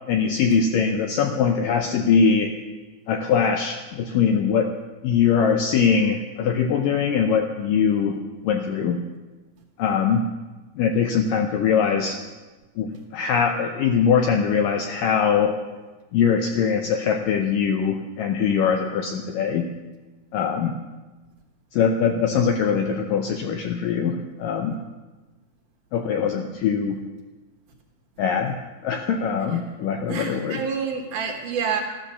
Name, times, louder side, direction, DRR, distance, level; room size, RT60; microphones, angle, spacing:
voice 1, 0.1-2.5 3.1-4.8 5.0-8.2 8.4-9.0 9.8-10.3 10.8-12.2 12.8-15.6 16.1-19.7 20.3-20.8 21.7-24.8 25.9-27.0 28.2-28.6 28.8-30.6, left 6 dB, 75° left, 5 dB, 2.0 m, -22 dB
voice 2, 30.1-31.8, right 6 dB, 60° right, 2 dB, 2.6 m, -27 dB
14.5 x 12.0 x 6.9 m, 1.2 s
omnidirectional pair, 4.8 m